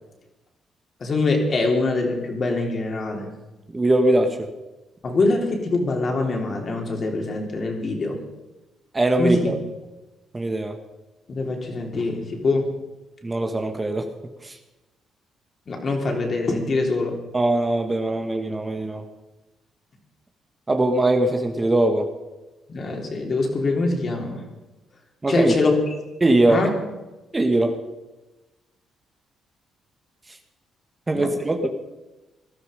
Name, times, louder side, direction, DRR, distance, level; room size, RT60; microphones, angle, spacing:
voice 1, 1.0-3.3 5.0-8.2 9.2-9.5 11.3-12.7 15.7-17.2 22.7-24.4 25.3-25.7 26.5-26.7 31.1-31.3, left 3 dB, 45° left, 2 dB, 3.4 m, -24 dB
voice 2, 3.7-4.5 8.9-9.6 10.3-10.7 13.2-14.1 14.4-14.6 17.3-19.0 20.7-22.1 25.2-25.5 26.2-26.6 27.3-27.8 31.1-31.7, right 1 dB, 20° right, 5 dB, 1.5 m, -21 dB
18.5 x 12.5 x 5.1 m, 1.1 s
cardioid pair, 90°, 0 cm